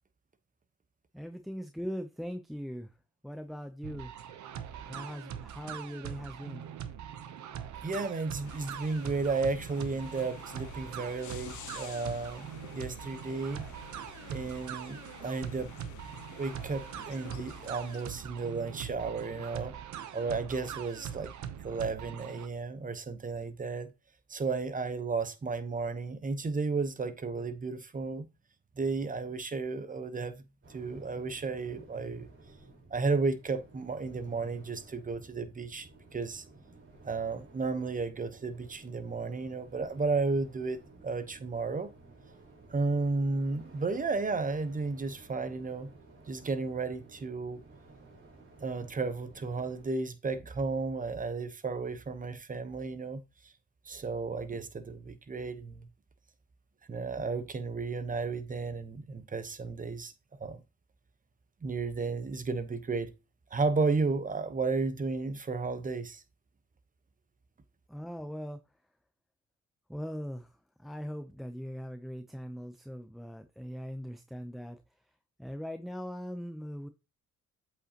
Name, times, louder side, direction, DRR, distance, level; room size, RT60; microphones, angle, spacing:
voice 1, 1.1-3.0 3.2-4.1 4.8-6.7 67.9-68.6 69.9-74.8 75.4-76.9, equal, ahead, 0.6 m, -40 dB
sound 1, 3.8-22.5, right 9 dB, 70° right, 0.9 m, -42 dB
voice 2, 7.8-13.6 14.3-15.7 16.4-19.7 20.1-21.3 21.6-23.9 24.3-28.3 28.8-30.4 30.7-32.3 32.9-36.4 37.0-41.9 42.7-45.9 46.3-47.6 48.6-53.5 53.8-55.9 56.9-60.1 60.4-60.6 61.6-63.1 63.5-66.2, right 4 dB, 25° right, 1.0 m, -33 dB
sound 2, 8.4-18.1, left 11 dB, 75° left, 0.8 m, -50 dB
sound 3, 30.6-49.9, right 3 dB, 40° right, 4.0 m, -55 dB
7.9 x 5.1 x 2.9 m
cardioid pair, 90°, 30 cm